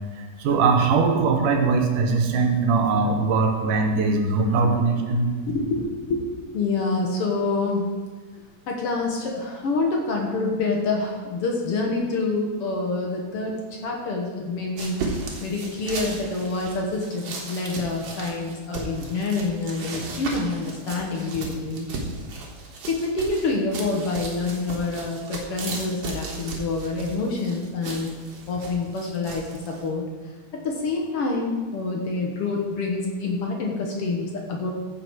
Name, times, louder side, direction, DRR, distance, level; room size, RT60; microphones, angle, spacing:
voice 1, 0.0-5.3, right 4 dB, 80° right, 4 dB, 2.6 m, -21 dB
voice 2, 5.5-6.2 6.5-7.9 8.7-13.5 13.8-21.9 22.9-28.1 28.5-30.0 30.5-34.7, left 3 dB, 55° left, 0 dB, 1.8 m, -27 dB
sound 1, 14.8-29.9, right 3 dB, 55° right, 2.3 m, -36 dB
15.0 x 5.9 x 4.7 m, 1.5 s
omnidirectional pair, 3.7 m